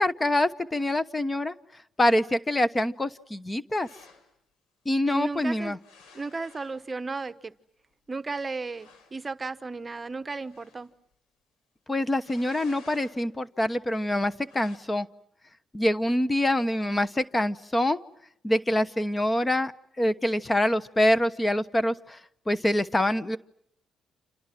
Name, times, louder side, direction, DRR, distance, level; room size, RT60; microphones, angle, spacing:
voice 1, 0.0-1.5 2.0-3.9 4.8-5.8 11.9-15.1 15.7-18.0 18.4-19.7 20.0-22.2 22.5-23.4, left 1 dB, 20° left, 14 dB, 1.1 m, -25 dB
sound 1, 3.8-4.3 5.8-6.9 8.1-8.2 8.4-8.5 8.7-9.2 10.4-10.9 12.1-13.2 14.4-14.8, left 4 dB, 90° left, 5.8 m, -53 dB
voice 2, 5.1-5.8 6.1-7.5 8.1-10.9, right 3 dB, 25° right, 12 dB, 1.1 m, -34 dB
30.0 x 27.5 x 6.1 m, 0.70 s
cardioid pair, 90°, 0 cm